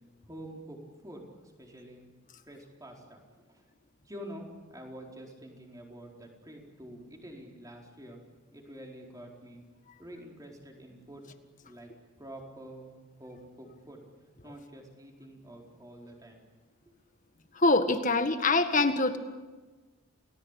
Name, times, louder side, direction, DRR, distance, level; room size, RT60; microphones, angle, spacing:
voice 1, 0.2-1.2 1.6-2.1 2.4-3.6 4.0-8.2 8.5-9.6 10.0-11.2 11.6-11.9 12.2-12.9 13.2-14.0 14.4-16.5 16.9-17.0, right 1 dB, 15° right, 0 dB, 4.4 m, -47 dB
voice 2, 17.6-19.2, left 3 dB, 40° left, 8 dB, 1.7 m, -24 dB
29.5 x 19.0 x 8.3 m, 1.3 s
head